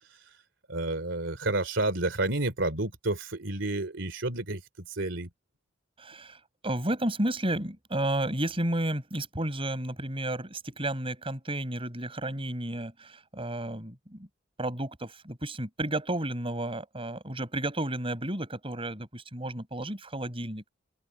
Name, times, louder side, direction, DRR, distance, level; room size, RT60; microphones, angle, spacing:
voice 1, 0.7-4.6 4.9-5.3, right 2 dB, 70° right, 3.2 m, -30 dB
voice 2, 6.0-14.3 14.6-20.7, right 1 dB, 30° right, 7.1 m, -32 dB
open air
head